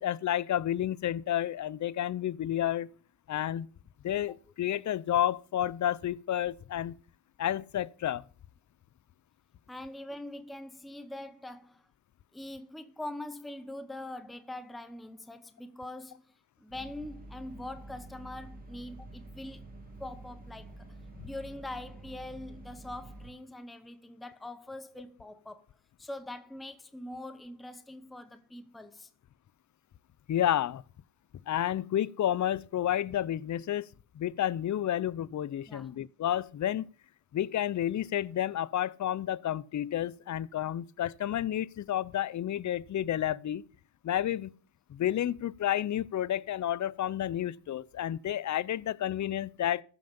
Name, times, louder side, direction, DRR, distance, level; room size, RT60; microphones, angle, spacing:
voice 1, 0.0-2.9 3.3-3.7 4.0-6.9 7.4-8.2 21.2-21.3 30.3-30.8 31.5-33.9 34.1-36.9 37.3-43.6 44.0-44.5 44.9-49.8, left 11 dB, 40° left, 0.5 m, -30 dB
voice 2, 9.7-11.8 12.3-16.2 16.6-19.6 20.0-20.9 21.2-25.7 26.0-29.1 35.7-36.0, left 1 dB, ahead, 0.9 m, -43 dB
sound 1, 16.7-23.3, right 2 dB, 15° right, 2.6 m, -48 dB
14.0 x 5.8 x 5.3 m
cardioid pair, 70°, 49 cm